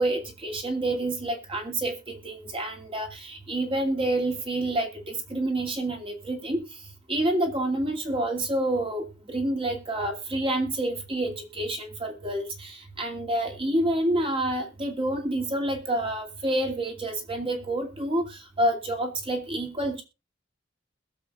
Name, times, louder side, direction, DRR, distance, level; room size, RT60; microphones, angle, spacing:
voice 1, 0.0-6.6 7.1-18.2 18.6-20.0, right 1 dB, 30° right, 3 dB, 2.5 m, -28 dB
21.5 x 7.1 x 2.4 m, 0.28 s
head